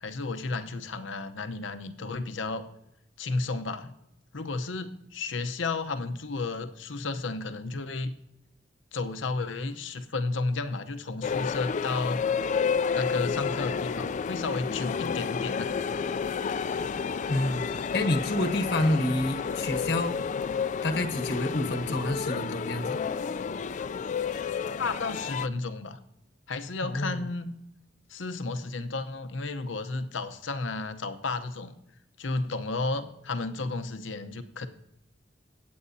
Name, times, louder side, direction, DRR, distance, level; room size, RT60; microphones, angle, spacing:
voice 1, 0.0-2.6 3.2-3.9 4.3-8.1 8.9-12.2 12.9-15.7 24.8-26.0 26.5-27.5 28.1-31.7 32.2-34.7, left 3 dB, 90° left, 9 dB, 0.8 m, -32 dB
sound 1, 11.2-25.5, left 6 dB, 40° left, 0.3 m, -31 dB
voice 2, 17.3-17.6 17.9-20.2 20.8-23.0 26.8-27.1, left 1 dB, 65° left, 8 dB, 1.0 m, -28 dB
21.0 x 8.6 x 2.7 m, 0.85 s
head